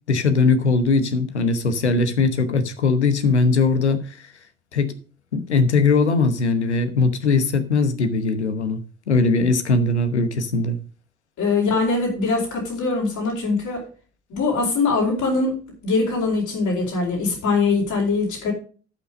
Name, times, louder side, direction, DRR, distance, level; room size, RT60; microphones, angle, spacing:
voice 1, 0.1-4.2 4.7-4.9 5.3-8.8 9.1-10.8, left 4 dB, 90° left, 1.0 m, -20 dB
voice 2, 11.4-13.8 14.3-18.5, left 3 dB, 60° left, 4.5 m, -22 dB
12.0 x 5.9 x 5.2 m
figure-of-eight pair, 50°, 33 cm